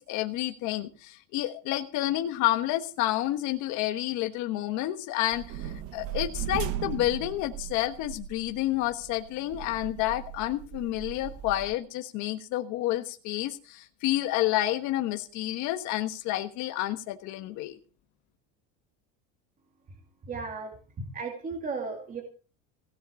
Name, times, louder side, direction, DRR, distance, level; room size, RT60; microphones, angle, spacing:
voice 1, 0.0-17.8, left 15 dB, 50° left, 6 dB, 1.4 m, -29 dB
sound 1, 5.3-11.7, right 11 dB, 40° right, 1.1 m, -38 dB
voice 2, 20.3-20.7 21.1-22.2, right 4 dB, 20° right, 1 dB, 2.4 m, -35 dB
17.0 x 6.7 x 8.3 m, 0.38 s
cardioid pair, 165°, 38 cm